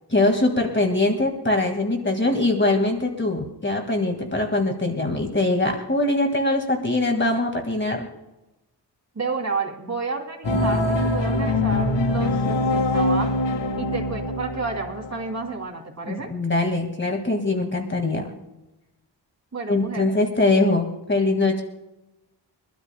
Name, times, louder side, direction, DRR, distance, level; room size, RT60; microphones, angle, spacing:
voice 1, 0.1-8.1 10.5-10.7 16.1-18.3 19.7-21.6, left 2 dB, 25° left, 3 dB, 2.0 m, -22 dB
voice 2, 9.1-13.3 13.8-16.3 19.5-20.1, right 3 dB, 40° right, 0 dB, 2.9 m, -30 dB
sound 1, 10.4-15.6, left 1 dB, 80° left, 1.7 m, -23 dB
25.0 x 12.5 x 2.2 m, 0.98 s
wide cardioid pair, 80°, 43 cm